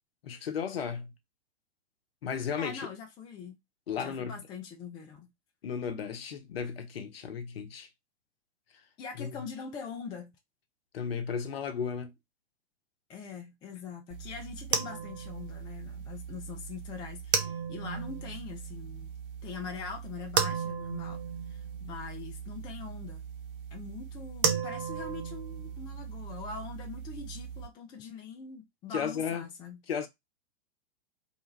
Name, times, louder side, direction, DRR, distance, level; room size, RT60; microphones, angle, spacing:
voice 1, 0.2-1.1 2.2-2.9 3.9-4.4 5.6-7.9 9.2-9.4 10.9-12.1 28.9-29.5 29.9-30.1, left 7 dB, 65° left, 0.7 m, -34 dB
voice 2, 2.6-3.6 4.0-5.3 9.0-10.3 13.1-19.1 19.4-21.2 21.5-23.2 23.7-29.8, left 5 dB, 15° left, 0.4 m, -43 dB
sound 1, 14.1-27.7, right 7 dB, 55° right, 0.7 m, -36 dB
2.6 x 2.2 x 3.1 m
figure-of-eight pair, 100°, 32 cm